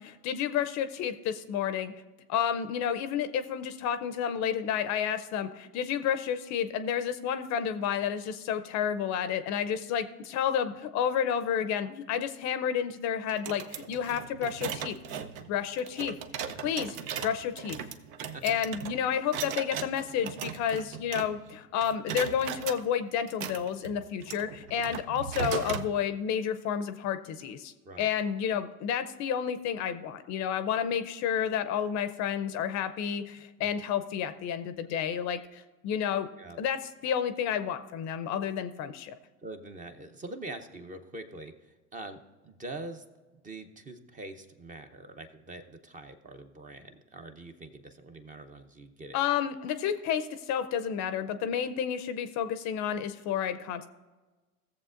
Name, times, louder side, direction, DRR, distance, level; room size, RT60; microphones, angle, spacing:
voice 1, 0.0-1.9 2.3-15.2 15.5-16.1 16.6-17.0 17.2-17.8 18.4-36.3 36.6-39.1 49.1-53.9, left 8 dB, 40° left, 11 dB, 0.6 m, -30 dB
sound 1, 13.3-21.5 21.8-22.8 23.3-25.9, right 8 dB, 65° right, 0.9 m, -38 dB
voice 2, 39.4-43.0 43.3-49.2, right 2 dB, 20° right, 7 dB, 0.7 m, -44 dB
16.5 x 7.3 x 2.5 m, 1.2 s
hypercardioid pair, 105°, 44 cm